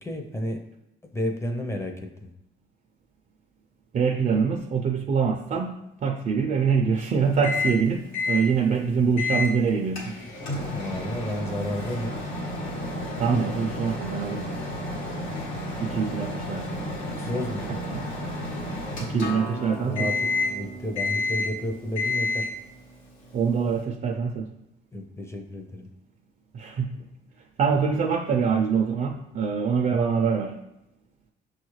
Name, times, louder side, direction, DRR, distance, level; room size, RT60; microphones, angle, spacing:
voice 1, 0.0-0.6 1.1-1.9 2.2-2.3 10.7-12.1 17.2-17.7 19.8-20.2 20.5-22.4 24.9-25.9, equal, 15° left, 4 dB, 0.5 m, -31 dB
voice 2, 3.9-10.1 13.2-14.5 15.8-16.8 17.7-18.0 19.0-20.1 23.3-24.5 26.5-26.9 27.6-30.6, right 6 dB, 40° right, 3 dB, 0.4 m, -24 dB
Microwave oven, 7.4-7.8 8.1-8.5 9.2-9.5 10.0-19.6 20.0-20.6 21.0-21.6 22.0-22.6, left 2 dB, 90° left, 1.1 m, -30 dB
Acoustic guitar, 19.2-24.4, equal, 50° left, 0.7 m, -40 dB
5.9 x 2.4 x 3.1 m, 0.87 s
cardioid pair, 90°, 20 cm